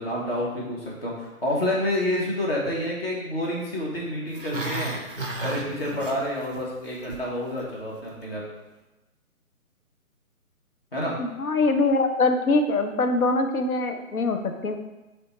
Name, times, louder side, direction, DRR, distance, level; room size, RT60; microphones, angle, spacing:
voice 1, 0.0-4.9 5.4-8.4 10.9-11.1, left 1 dB, 40° left, -4 dB, 1.2 m, -28 dB
Growling, 4.3-6.6 6.9-7.3 7.6-7.7, right 2 dB, 40° right, 0.5 m, -33 dB
voice 2, 11.2-14.8, left 3 dB, 75° left, 6 dB, 0.7 m, -23 dB
3.7 x 3.5 x 4.1 m, 1.1 s
hypercardioid pair, 180°, 43 cm